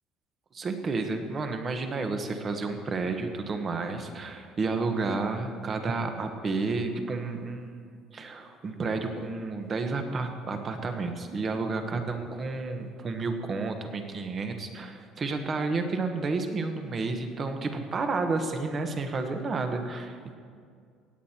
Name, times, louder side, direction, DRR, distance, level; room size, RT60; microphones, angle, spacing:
voice 1, 0.5-20.3, right 3 dB, 30° right, 6 dB, 1.2 m, -31 dB
17.0 x 9.5 x 4.4 m, 2.2 s
cardioid pair, 140°, 0 cm